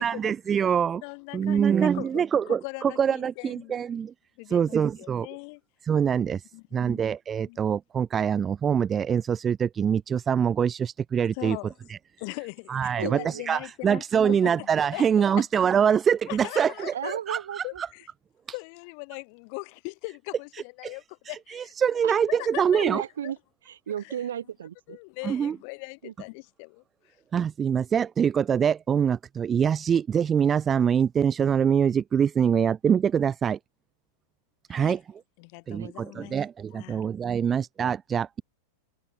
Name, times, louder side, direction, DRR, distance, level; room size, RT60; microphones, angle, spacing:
voice 1, 0.0-1.0 1.3-4.1 4.5-5.3 5.8-11.6 11.9-12.0 12.7-17.9 20.5-21.0 21.2-23.0 25.2-25.6 27.3-33.6 34.7-35.0 35.7-38.4, right 7 dB, 20° right, 1.6 m, -24 dB
voice 2, 1.0-3.8 4.4-5.6 6.5-7.1 7.5-7.6 11.3-11.7 12.2-15.4 16.3-17.2 17.6-18.1 18.5-21.7 22.3-23.3 24.9-27.2 34.7-35.0 35.4-36.4 36.7-37.0, left 40 dB or more, 45° left, 5.4 m, -40 dB
voice 3, 13.0-13.4 16.8-17.8 22.0-22.1 22.8-23.4 23.7-25.0 26.0-26.1 35.8-35.9, right 9 dB, 65° right, 5.3 m, -34 dB
figure-of-eight pair, 90°, 0 cm